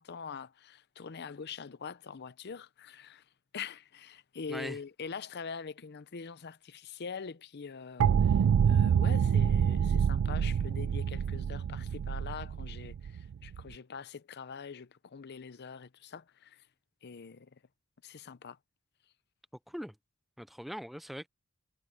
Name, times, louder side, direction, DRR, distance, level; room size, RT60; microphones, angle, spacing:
voice 1, 0.0-3.2 3.5-16.6 17.0-17.5 18.0-18.6, left 6 dB, 50° left, 0.6 m, -44 dB
sound 1, 8.0-13.7, right 7 dB, 75° right, 0.3 m, -27 dB
voice 2, 20.4-21.3, equal, ahead, 0.4 m, -40 dB
head